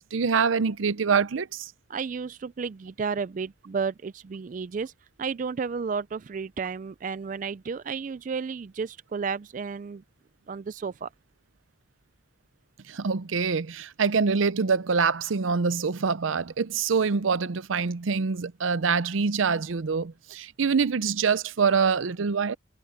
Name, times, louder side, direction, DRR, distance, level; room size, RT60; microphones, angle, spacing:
voice 1, 0.0-1.7 12.9-22.5, right 5 dB, 90° right, 0.6 m, -25 dB
voice 2, 1.9-4.9 5.2-10.0 10.5-11.1, right 5 dB, 40° right, 0.3 m, -32 dB
head